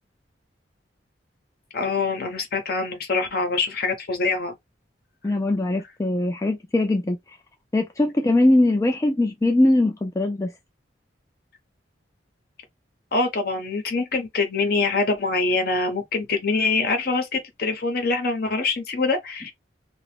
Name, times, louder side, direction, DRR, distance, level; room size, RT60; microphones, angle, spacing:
voice 1, 1.7-4.5 13.1-19.5, left 3 dB, 50° left, 0.9 m, -24 dB
voice 2, 5.2-7.4 7.7-10.5, left 1 dB, 15° left, 0.3 m, -21 dB
2.9 x 2.4 x 3.3 m
head